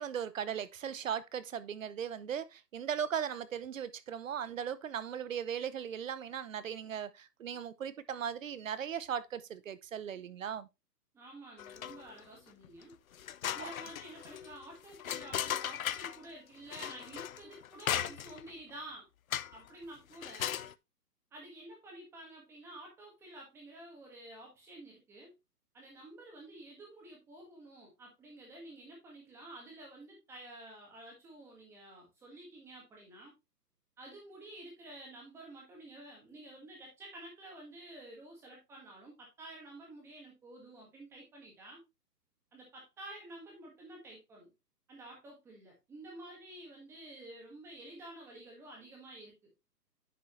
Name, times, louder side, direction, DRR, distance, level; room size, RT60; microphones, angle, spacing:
voice 1, 0.0-10.7 13.6-13.7, right 8 dB, 50° right, 0.7 m, -38 dB
voice 2, 11.1-12.9 13.5-19.1 19.5-20.6 21.3-25.3 25.7-33.3 34.0-41.8 42.5-44.5 44.9-49.5, right 1 dB, 5° right, 1.6 m, -50 dB
sound 1, 11.6-12.2 12.6-12.7 13.1-16.2 16.7-18.5 19.3-19.7 20.1-20.7, left 10 dB, 60° left, 0.5 m, -37 dB
10.0 x 5.0 x 3.1 m
hypercardioid pair, 170°, 49 cm